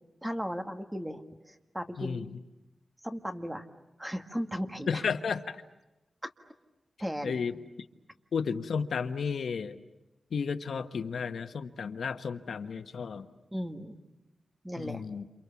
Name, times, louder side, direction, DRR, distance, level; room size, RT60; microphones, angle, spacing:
voice 1, 0.2-2.3 3.0-3.7 4.0-5.0 7.0-7.4 13.5-13.9 14.6-15.0, equal, 5° right, 6 dB, 1.8 m, -36 dB
voice 2, 2.0-2.3 4.9-5.6 7.2-7.5 8.3-9.8 10.3-13.3 14.8-15.2, left 6 dB, 80° left, 9 dB, 1.2 m, -33 dB
29.5 x 28.5 x 7.1 m, 0.98 s
wide cardioid pair, 150°, 0 cm